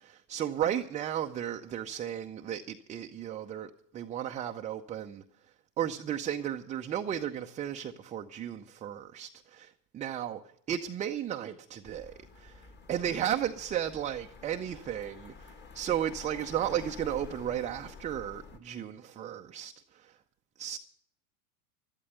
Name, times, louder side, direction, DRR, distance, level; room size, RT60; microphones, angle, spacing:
voice 1, 0.0-5.2 5.8-10.4 10.7-20.2 20.6-20.8, right 10 dB, 15° right, 0.5 m, -34 dB
sound 1, 11.8-18.6, left 4 dB, 20° left, 1.6 m, -49 dB
12.5 x 12.5 x 6.6 m
hypercardioid pair, 110°, 48 cm